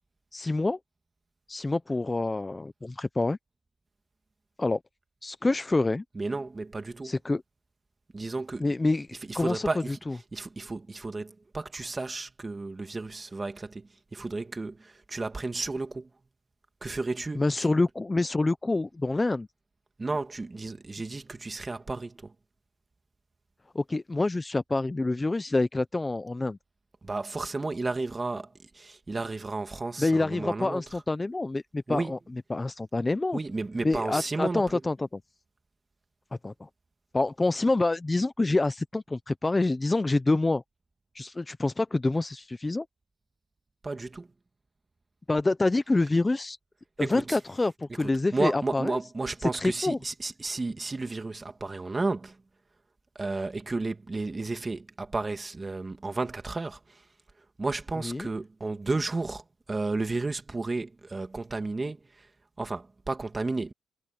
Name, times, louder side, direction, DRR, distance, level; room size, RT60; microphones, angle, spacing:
voice 1, 0.3-0.8 1.5-3.4 4.6-4.8 5.2-6.0 7.0-7.4 8.6-9.1 9.3-9.7 10.1-10.2 17.4-19.5 23.7-26.6 30.0-32.2 32.5-33.4 33.8-34.9 36.4-36.7 37.1-40.6 41.1-42.9 45.3-46.6 47.0-49.0 49.6-50.0 58.0-58.3, left 2 dB, 20° left, 0.7 m, -27 dB
voice 2, 6.1-7.2 8.1-8.8 9.2-10.0 10.3-16.1 16.8-17.7 20.0-22.3 27.0-31.0 31.9-32.1 33.3-34.8 43.8-44.3 47.0-47.4 47.9-52.4 53.1-57.1 57.4-62.3 62.6-63.7, right 3 dB, 25° right, 2.5 m, -33 dB
cardioid pair, 90°, 0 cm